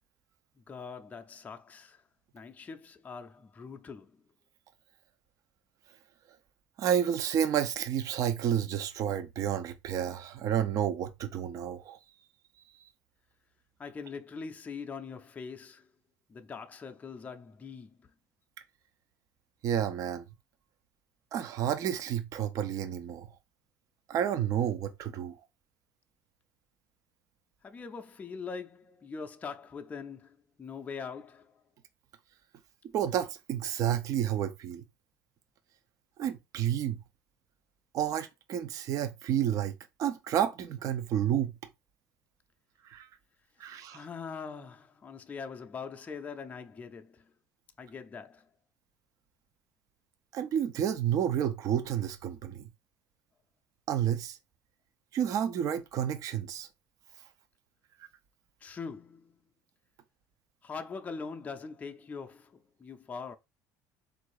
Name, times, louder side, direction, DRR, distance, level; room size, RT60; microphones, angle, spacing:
voice 1, 0.5-2.0 2.3-4.2 13.8-15.9 16.3-18.1 27.6-31.6 43.9-47.3 47.8-48.5 58.6-59.4 60.6-63.4, left 5 dB, 20° left, 0.5 m, -42 dB
voice 2, 6.8-12.0 19.6-20.2 21.3-23.3 24.1-25.4 32.9-34.8 36.2-37.0 37.9-39.7 40.0-41.5 42.8-43.1 43.6-44.0 50.3-52.7 53.9-54.4 55.1-56.7, right 10 dB, 45° right, 0.5 m, -30 dB
3.9 x 2.5 x 4.7 m
cardioid pair, 135°, 8 cm